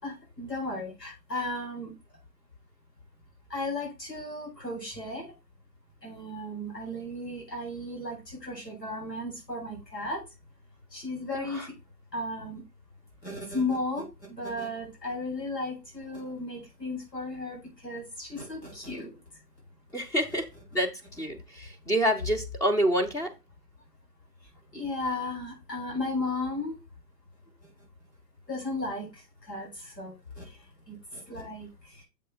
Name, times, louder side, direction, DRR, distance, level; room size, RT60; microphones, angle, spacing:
voice 1, 0.0-1.9 3.5-5.2 6.0-10.2 10.9-11.7 12.1-12.6 13.2-19.1 24.7-26.7 28.5-29.1 29.5-30.5 30.9-31.7 31.9-32.0, left 2 dB, 90° left, -2 dB, 4.6 m, -35 dB
voice 2, 11.3-11.7 19.9-23.3, equal, 5° left, 5 dB, 0.6 m, -28 dB
7.4 x 3.2 x 6.0 m, 0.26 s
figure-of-eight pair, 120°, 48 cm